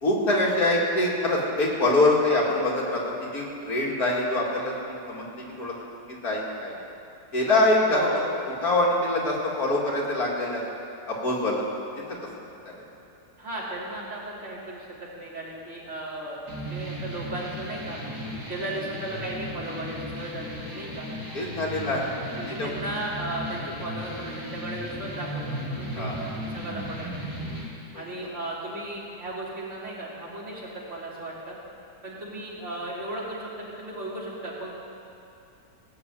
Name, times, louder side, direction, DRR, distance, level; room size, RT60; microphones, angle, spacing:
voice 1, 0.0-5.7 6.1-6.8 7.3-8.0 8.6-10.7 11.1-11.6 12.7-12.8 18.2-18.4 21.3-22.7 25.9-26.2 27.9-28.0, left 2 dB, 65° left, -4 dB, 2.8 m, -25 dB
voice 2, 7.8-8.2 13.4-16.4 16.7-18.0 18.5-21.1 22.3-27.1 27.9-31.6 32.0-34.7, right 1 dB, 45° right, -6 dB, 3.2 m, -35 dB
sound 1, 16.5-27.6, equal, 10° right, 2.9 m, -36 dB
16.5 x 6.5 x 8.9 m, 2.6 s
omnidirectional pair, 1.7 m